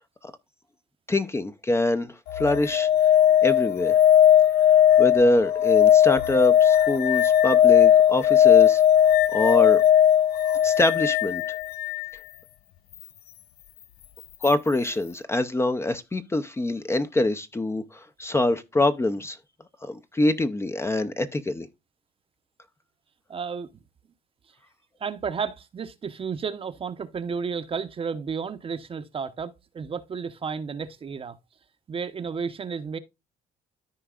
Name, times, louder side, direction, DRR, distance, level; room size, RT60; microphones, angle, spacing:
voice 1, 1.1-2.9 3.4-4.0 5.0-8.8 9.3-9.8 10.6-11.4 14.4-19.4 19.8-21.7, left 2 dB, 15° left, 0.6 m, -24 dB
sound 1, 2.3-12.1 14.4-14.5, left 10 dB, 70° left, 0.5 m, -18 dB
voice 2, 23.3-23.7 25.0-31.4 31.9-33.0, right 6 dB, 35° right, 0.8 m, -32 dB
13.5 x 4.6 x 2.4 m
cardioid pair, 110°, 17 cm